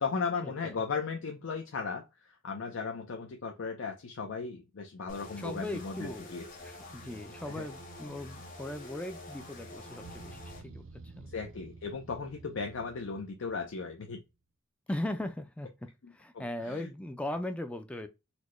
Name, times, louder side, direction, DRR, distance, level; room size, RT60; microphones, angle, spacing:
voice 1, 0.0-6.4 7.5-7.7 11.3-14.2 16.0-16.9, left 5 dB, 75° left, 0.5 m, -36 dB
sound 1, 5.1-10.6, left 1 dB, 45° left, 1.2 m, -47 dB
voice 2, 5.4-6.3 6.6-10.8 11.2-11.3 14.9-18.1, left 1 dB, 5° left, 0.3 m, -39 dB
sound 2, 10.0-14.2, right 3 dB, 70° right, 0.5 m, -51 dB
4.1 x 2.1 x 3.0 m
head